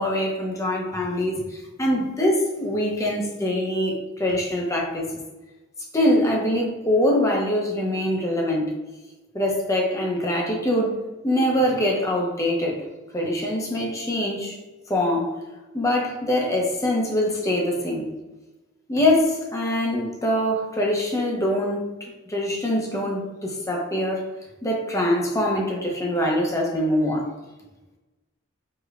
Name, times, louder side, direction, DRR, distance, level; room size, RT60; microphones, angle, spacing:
voice 1, 0.0-5.1 5.9-8.7 9.3-12.8 13.1-14.6 14.9-15.4 15.7-18.1 18.9-22.0 22.3-24.3 24.6-27.3, left 1 dB, 15° left, -1 dB, 0.5 m, -23 dB
4.8 x 2.1 x 2.3 m, 1.1 s
head